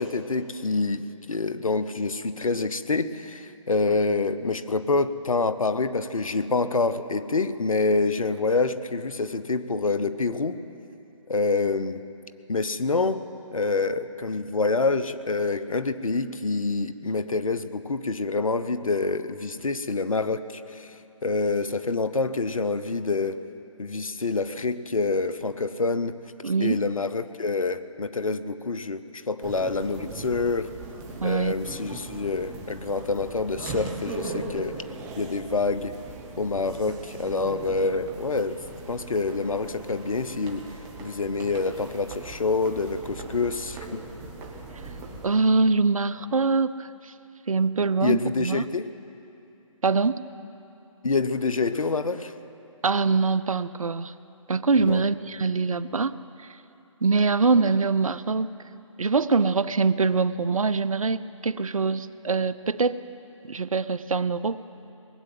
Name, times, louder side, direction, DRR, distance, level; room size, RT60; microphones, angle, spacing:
voice 1, 0.0-10.6 11.3-12.0 12.5-13.2 13.5-23.4 23.8-26.2 26.6-30.7 31.2-34.8 35.2-35.9 36.4-38.6 38.9-40.7 41.0-44.0 48.0-48.9 51.0-52.3 54.8-55.0, left 3 dB, 80° left, 13 dB, 0.8 m, -27 dB
voice 2, 26.4-26.8 31.2-31.5 45.2-47.1 47.5-48.6 49.8-50.2 52.8-54.1 54.5-56.2 57.0-58.5 59.0-63.0 63.4-64.6, right 4 dB, 85° right, 16 dB, 0.6 m, -23 dB
sound 1, 29.4-45.3, right 3 dB, 15° right, 1.3 m, -39 dB
19.5 x 7.8 x 9.1 m, 2.8 s
figure-of-eight pair, 145°, 17 cm